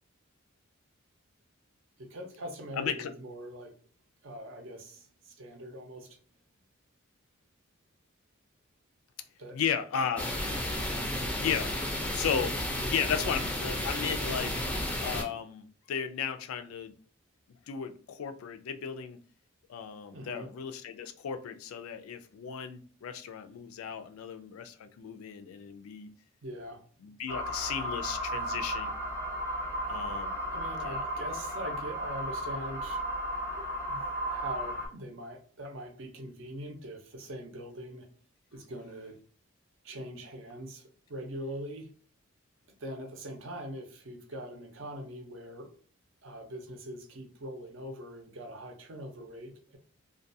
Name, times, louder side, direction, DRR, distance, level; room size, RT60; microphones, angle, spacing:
voice 1, 2.0-3.7 4.2-6.2 9.4-9.6 20.1-20.5 26.4-26.8 30.5-33.1 33.6-38.1 38.5-39.2 39.8-41.9 42.8-45.7 46.2-49.8, equal, 65° right, 0.6 m, -42 dB
voice 2, 2.8-3.1 9.5-10.3 11.4-11.7 12.1-12.6 12.8-14.7 15.0-16.9 17.7-19.2 19.7-26.1 27.0-28.9 29.9-30.4 30.8-31.0, left 7 dB, 85° left, 0.3 m, -35 dB
sound 1, 10.2-15.2, left 1 dB, 5° left, 0.4 m, -32 dB
sound 2, 27.3-34.9, equal, 15° right, 0.7 m, -34 dB
2.3 x 2.2 x 2.6 m
head